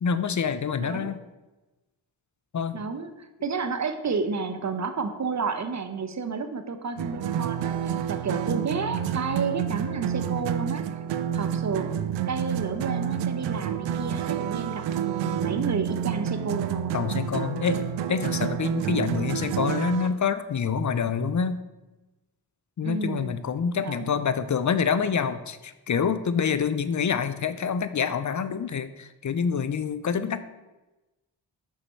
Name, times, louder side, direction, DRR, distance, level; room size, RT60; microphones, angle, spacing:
voice 1, 0.0-1.2 2.5-2.8 16.9-21.6 22.8-30.4, left 6 dB, 40° left, 13 dB, 0.6 m, -27 dB
voice 2, 0.8-1.2 2.7-10.8 11.3-12.0 12.3-17.0 22.8-23.4 23.8-24.2, right 4 dB, 40° right, 9 dB, 0.9 m, -31 dB
sound 1, 7.0-20.1, right 9 dB, 75° right, 0.5 m, -29 dB
6.3 x 5.5 x 4.5 m, 1.1 s
supercardioid pair, 45°, 44 cm